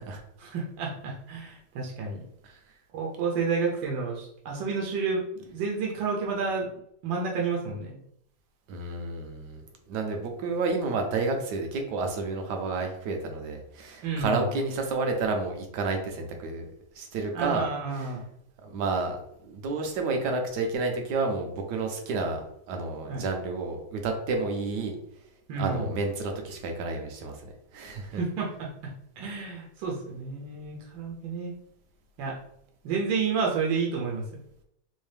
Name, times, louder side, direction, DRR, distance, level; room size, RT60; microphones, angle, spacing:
voice 1, 0.4-2.2 2.9-5.2 5.5-6.7 7.0-8.0 14.0-14.5 17.3-18.2 23.1-23.2 25.5-25.9 28.1-31.5 32.2-32.4 32.8-34.4, right 5 dB, 85° right, -2 dB, 1.4 m, -30 dB
voice 2, 8.7-9.6 9.9-16.7 16.9-18.2 18.6-25.0 25.6-28.2, right 3 dB, 70° right, 4 dB, 1.2 m, -30 dB
3.5 x 2.7 x 3.3 m, 0.75 s
omnidirectional pair, 2.0 m